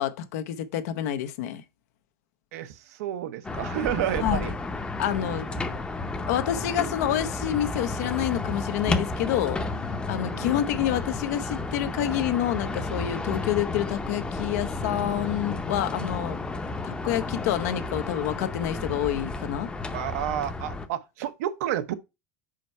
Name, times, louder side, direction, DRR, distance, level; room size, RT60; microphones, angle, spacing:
voice 1, 0.0-1.6 4.2-4.5 5.0-5.5 6.3-9.6 10.1-16.4 16.8-19.7, left 11 dB, 80° left, 0.8 m, -28 dB
voice 2, 2.5-4.5 5.1-5.7 10.2-10.6 19.9-22.0, right 12 dB, 85° right, 0.8 m, -31 dB
sound 1, 3.4-20.9, left 2 dB, 10° left, 0.7 m, -32 dB
5.0 x 4.5 x 5.4 m
supercardioid pair, 135°, 8 cm